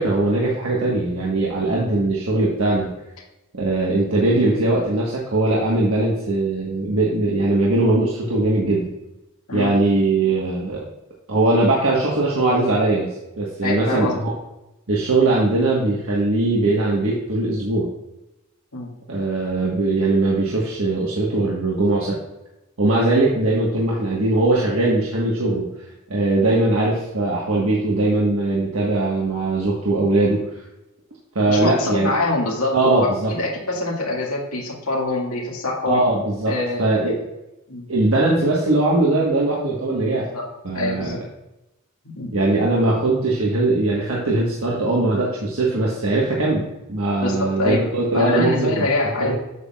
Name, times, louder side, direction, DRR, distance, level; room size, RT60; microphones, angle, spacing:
voice 1, 0.0-3.0 3.5-8.9 9.5-10.8 11.3-14.3 14.9-17.9 19.1-22.2 22.8-25.7 26.1-30.4 31.3-32.1 32.7-33.3 35.8-37.2 37.9-40.3 40.6-41.1 42.3-48.9 49.2-49.3, right 2 dB, 65° right, -4 dB, 1.4 m, -20 dB
voice 2, 13.6-14.2 18.7-18.9 31.5-36.0 36.5-37.1 37.7-37.9 40.3-40.5 40.7-41.2 42.2-42.3 47.2-47.8 48.1-49.3, left 2 dB, 80° left, -2 dB, 2.1 m, -24 dB
8.1 x 7.5 x 2.4 m, 0.94 s
head